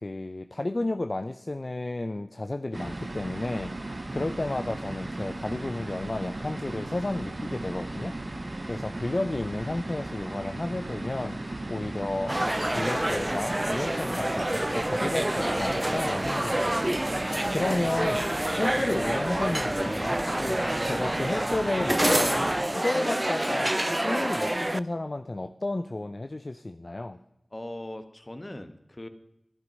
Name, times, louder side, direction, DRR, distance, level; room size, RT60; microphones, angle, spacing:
voice 1, 0.0-3.7 4.1-12.4 12.7-23.7 24.0-27.2, left 2 dB, 55° left, 9 dB, 0.5 m, -32 dB
sound 1, 2.7-22.6, right 2 dB, 50° right, 0.8 m, -36 dB
sound 2, 12.3-24.8, right 1 dB, 25° right, 0.4 m, -28 dB
voice 2, 27.5-29.1, left 1 dB, 35° left, 9 dB, 1.2 m, -39 dB
11.5 x 11.0 x 5.3 m, 0.79 s
wide cardioid pair, 45°, 0 cm